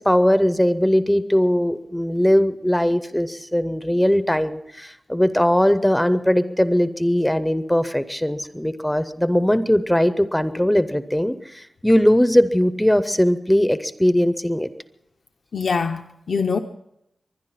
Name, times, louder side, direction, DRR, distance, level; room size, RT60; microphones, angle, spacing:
voice 1, 0.0-14.7, equal, 5° left, 0.5 m, -19 dB
voice 2, 15.5-16.6, left 5 dB, 60° left, 0.6 m, -23 dB
24.0 x 10.5 x 5.6 m
wide cardioid pair, 160°, 0 cm